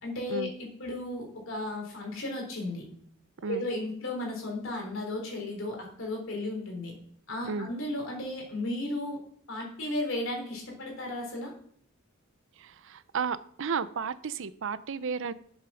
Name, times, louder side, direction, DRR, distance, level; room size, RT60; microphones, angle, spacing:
voice 1, 0.0-2.8 3.4-6.9 7.3-9.2 9.5-11.5, left 1 dB, 65° left, 1 dB, 3.8 m, -34 dB
voice 2, 12.6-15.3, right 5 dB, 65° right, 15 dB, 0.6 m, -33 dB
8.3 x 7.4 x 6.3 m, 0.63 s
head